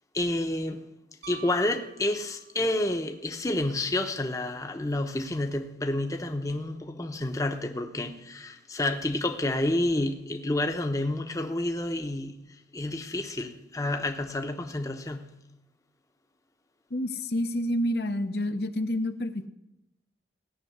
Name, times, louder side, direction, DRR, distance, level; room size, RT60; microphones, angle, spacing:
voice 1, 0.1-0.8 1.3-15.3, left 1 dB, 20° left, 0.8 m, -29 dB
Piano, 1.2-2.8 5.2-5.3, right 8 dB, 75° right, 0.9 m, -47 dB
voice 2, 16.9-19.5, left 1 dB, 60° left, 0.9 m, -28 dB
16.5 x 6.9 x 9.3 m
head